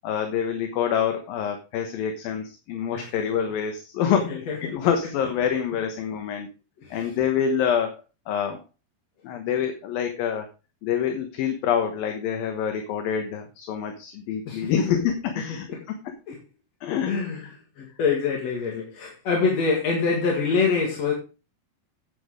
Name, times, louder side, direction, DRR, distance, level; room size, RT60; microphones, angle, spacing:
voice 1, 0.0-6.5 6.9-8.6 9.2-10.5 10.8-15.7 16.8-17.5, left 8 dB, 65° left, 5 dB, 2.6 m, -26 dB
voice 2, 4.3-4.7 6.8-7.0 14.5-15.0 16.3-16.4 17.1-17.4 17.8-21.1, left 5 dB, 50° left, -1 dB, 2.5 m, -25 dB
9.2 x 8.6 x 5.0 m, 0.33 s
omnidirectional pair, 5.0 m